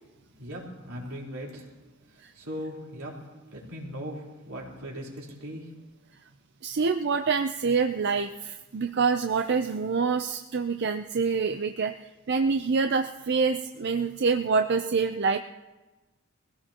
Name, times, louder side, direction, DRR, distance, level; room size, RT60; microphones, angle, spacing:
voice 1, 0.4-1.7 2.3-5.7, equal, 80° right, -3 dB, 4.0 m, -39 dB
voice 2, 6.6-15.4, right 5 dB, 55° right, 7 dB, 0.5 m, -26 dB
23.5 x 16.5 x 2.9 m, 1.2 s
head